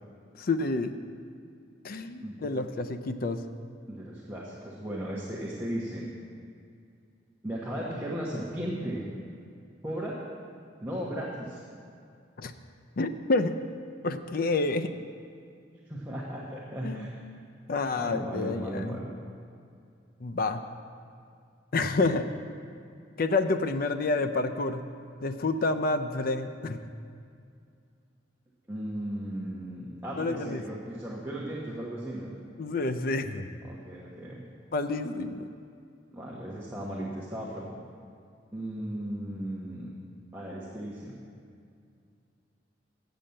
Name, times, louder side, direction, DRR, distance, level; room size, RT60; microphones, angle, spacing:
voice 1, 0.4-0.9 1.8-3.4 12.4-12.5 13.0-13.5 14.0-14.9 16.8-17.4 17.7-19.0 20.2-20.6 21.7-22.3 23.2-24.8 25.2-26.8 30.2-30.6 32.6-33.5 34.7-35.5, left 3 dB, 50° left, 9 dB, 0.5 m, -29 dB
voice 2, 3.9-6.0 7.4-9.1 9.8-10.2 10.8-11.6 15.9-17.1 18.0-19.1 28.7-32.4 33.6-34.4 36.1-37.8 38.5-39.9 40.3-41.2, right 1 dB, 15° right, -6 dB, 1.2 m, -36 dB
8.7 x 7.0 x 7.7 m, 2.4 s
head